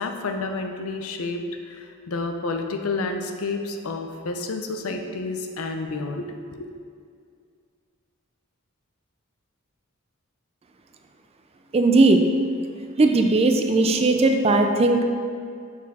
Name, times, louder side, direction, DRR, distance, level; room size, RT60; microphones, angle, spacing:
voice 1, 0.0-6.7, left 3 dB, 85° left, 5 dB, 0.6 m, -30 dB
voice 2, 11.7-12.2 13.0-15.0, right 2 dB, 30° right, 5 dB, 0.4 m, -18 dB
6.0 x 4.2 x 4.1 m, 2.2 s
head